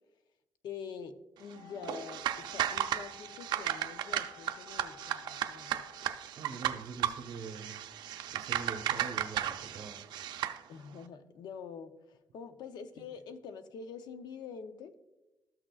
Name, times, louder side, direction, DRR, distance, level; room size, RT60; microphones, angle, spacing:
voice 1, 0.6-5.9 10.7-14.9, left 6 dB, 75° left, 10 dB, 0.7 m, -46 dB
Wind instrument woodwind instrument, 1.5-6.3, left 9 dB, 55° left, 2.5 m, -55 dB
sound 1, 1.8-10.6, right 11 dB, 85° right, 0.5 m, -35 dB
voice 2, 6.4-7.8 8.3-10.0 12.9-13.1, right 4 dB, 55° right, 4 dB, 1.1 m, -44 dB
14.0 x 6.2 x 2.4 m, 0.99 s
cardioid pair, 140°, 7 cm